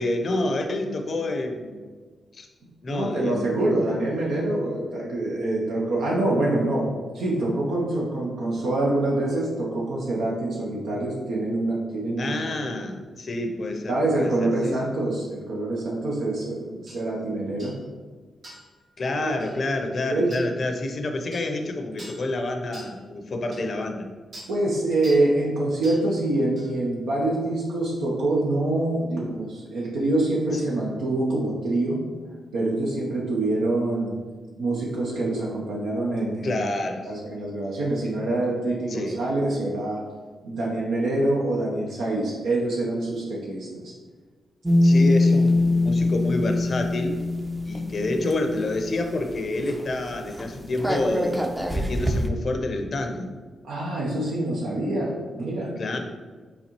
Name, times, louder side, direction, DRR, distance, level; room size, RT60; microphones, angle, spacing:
voice 1, 0.0-1.8 2.3-2.5 2.8-3.7 12.2-14.8 19.0-24.1 30.5-30.7 36.4-37.1 38.9-39.2 44.8-47.2 47.7-53.3 55.8-56.0, left 2 dB, 55° left, 5 dB, 0.6 m, -28 dB
voice 2, 2.9-6.9 7.1-12.5 13.9-17.7 19.2-19.3 20.1-20.3 24.5-32.0 32.5-34.1 34.6-36.7 37.0-40.0 40.4-43.9 53.7-55.7, right 2 dB, 85° right, -4 dB, 0.7 m, -25 dB
sound 1, 16.9-17.0 17.6-17.8 18.4-18.7 19.4-19.6 20.3-20.5 21.3-21.5 22.0-22.2 22.7-22.9 23.5-23.6 24.3-24.5 25.0-25.3 25.8-26.0 26.6-26.7, right 1 dB, 65° right, 1.4 m, -43 dB
sound 2, 44.7-49.3 49.7-49.8 50.1-52.3, left 2 dB, 10° right, 0.5 m, -23 dB
4.1 x 3.8 x 2.9 m, 1.4 s
cardioid pair, 55°, 0 cm